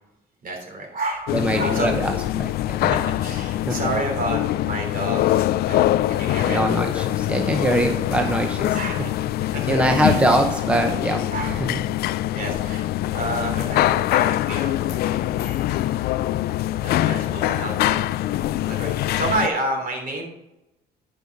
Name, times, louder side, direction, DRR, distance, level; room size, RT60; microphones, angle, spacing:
voice 1, 0.4-1.9 2.8-6.6 8.7-10.2 11.3-11.6 12.3-12.8 13.1-15.8 16.8-18.1 18.7-20.3, right 2 dB, 55° right, 2 dB, 3.4 m, -30 dB
sound 1, 1.3-19.5, left 14 dB, 65° left, 0.4 m, -23 dB
voice 2, 1.3-2.9 3.7-3.8 6.4-8.7 9.7-11.2 11.7-11.8, right 1 dB, 5° right, 4 dB, 0.8 m, -23 dB
11.5 x 5.5 x 4.7 m, 0.93 s
cardioid pair, 110°, 17 cm